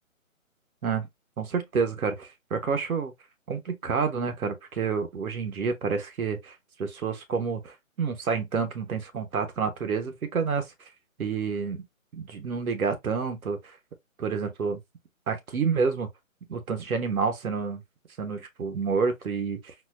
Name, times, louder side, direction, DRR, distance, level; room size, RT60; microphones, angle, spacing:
voice 1, 1.4-3.1 3.5-10.6 11.2-11.8 12.1-13.6 14.2-14.8 15.3-16.1 16.5-17.8 18.2-19.7, right 5 dB, 85° right, 1.0 m, -29 dB
4.1 x 2.2 x 2.4 m
hypercardioid pair, 180°, 42 cm